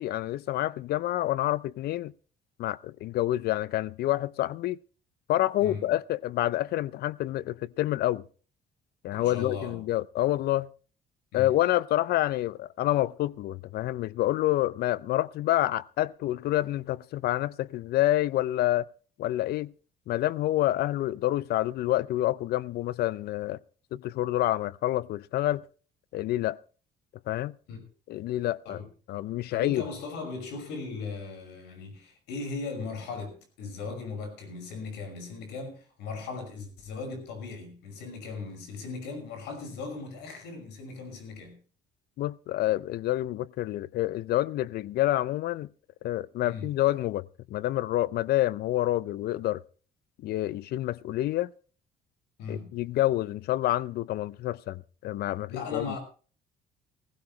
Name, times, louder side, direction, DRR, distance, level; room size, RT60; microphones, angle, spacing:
voice 1, 0.0-2.1 2.6-4.8 5.3-8.2 9.0-10.7 11.3-18.9 19.2-19.7 20.1-23.6 23.9-25.6 26.1-26.6 27.3-27.5 28.1-28.8 29.1-29.8 42.2-45.7 46.0-49.6 50.2-51.5 52.5-55.9, left 15 dB, 70° left, 0.6 m, -28 dB
voice 2, 5.6-5.9 9.1-9.8 11.3-11.6 27.7-27.8 28.7-28.9 29.5-41.6 46.4-46.7 52.4-52.8 55.5-56.0, left 4 dB, 85° left, 5.7 m, -38 dB
16.0 x 16.0 x 3.2 m
cardioid pair, 110°, 17 cm